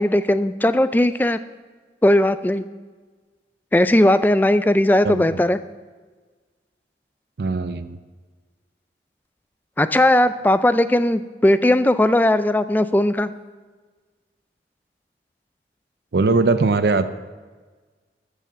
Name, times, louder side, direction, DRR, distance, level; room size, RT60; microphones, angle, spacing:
voice 1, 0.0-1.4 2.0-2.7 3.7-5.6 9.8-13.3, left 1 dB, 10° left, 12 dB, 0.3 m, -18 dB
voice 2, 7.4-8.0 16.1-17.1, right 3 dB, 70° right, 10 dB, 0.5 m, -20 dB
13.0 x 6.9 x 6.0 m, 1.4 s
head